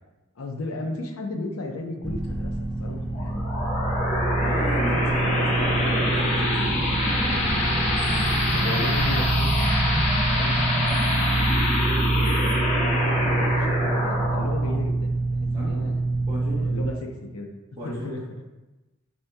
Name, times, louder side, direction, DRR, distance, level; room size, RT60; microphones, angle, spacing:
voice 1, 0.4-2.5 2.8-3.5 8.5-12.2 12.5-15.1 15.4-16.0 16.5-17.5 17.8-18.2, left 2 dB, 85° left, 2 dB, 0.6 m, -35 dB
sound 1, 2.0-16.9, right 2 dB, ahead, 0.4 m, -26 dB
sound 2, 3.1-16.3, left 1 dB, 30° left, 0.8 m, -26 dB
voice 2, 4.4-7.8 15.5-15.9 16.3-16.7 17.8-18.1, equal, 20° right, -10 dB, 0.9 m, -35 dB
6.0 x 2.7 x 2.2 m, 1.1 s
head